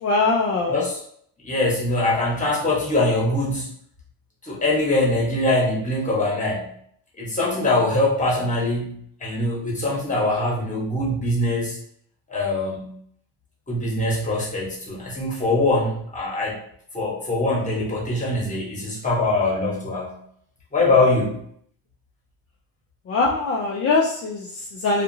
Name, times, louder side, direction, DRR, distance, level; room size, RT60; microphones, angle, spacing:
voice 1, 0.0-0.8 23.1-25.0, left 3 dB, 35° left, -2 dB, 0.4 m, -22 dB
voice 2, 0.7-1.0 1.4-3.7 4.4-6.7 7.2-11.8 12.3-13.0 13.7-16.6 16.9-20.2 20.7-21.4, left 2 dB, 15° left, -4 dB, 1.0 m, -23 dB
2.8 x 2.4 x 2.6 m, 0.65 s
cardioid pair, 115°, 46 cm